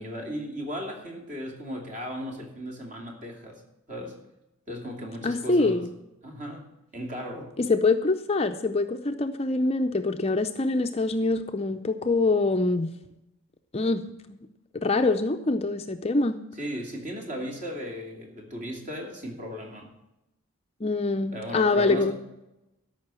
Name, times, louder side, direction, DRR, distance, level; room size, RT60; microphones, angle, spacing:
voice 1, 0.0-3.6 3.9-4.2 4.7-5.9 6.2-7.6 16.6-19.9 21.3-22.1, equal, 35° right, 0 dB, 2.7 m, -36 dB
voice 2, 5.2-5.9 7.6-12.9 13.7-14.4 14.7-16.4 20.8-22.1, left 3 dB, 30° left, 7 dB, 0.5 m, -25 dB
13.5 x 5.7 x 7.5 m, 0.91 s
head